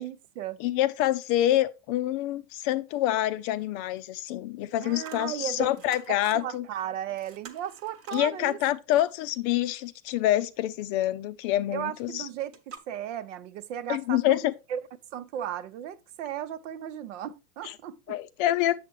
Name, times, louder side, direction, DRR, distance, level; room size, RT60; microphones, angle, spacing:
voice 1, 0.0-0.6 4.8-5.7 6.1-8.6 11.7-14.4 14.7-14.8 15.1-18.0, right 10 dB, 55° right, 0.7 m, -35 dB
voice 2, 0.6-6.7 8.1-12.3 13.9-14.5 17.6-17.7 18.1-18.8, left 13 dB, 40° left, 0.5 m, -26 dB
sound 1, 5.0-5.3 5.6-6.5 6.8-6.9 7.1-8.3 12.0-12.1 12.5-12.8, right 6 dB, 30° right, 1.1 m, -47 dB
7.6 x 7.0 x 3.1 m
hypercardioid pair, 115°, 44 cm